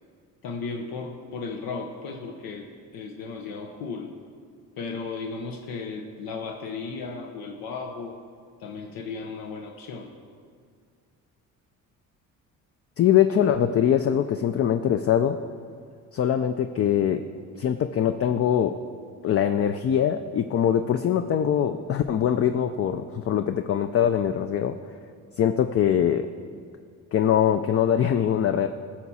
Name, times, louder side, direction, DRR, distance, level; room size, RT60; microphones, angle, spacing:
voice 1, 0.4-2.7 2.9-4.1 4.8-8.1 8.6-10.1, left 4 dB, 85° left, 2 dB, 0.9 m, -35 dB
voice 2, 13.0-15.4 16.1-17.3 17.6-18.8 19.2-24.8 25.4-26.3 27.1-28.7, left 9 dB, 40° left, 8 dB, 0.4 m, -22 dB
15.5 x 6.0 x 4.2 m, 2.2 s
cardioid pair, 95°, 35 cm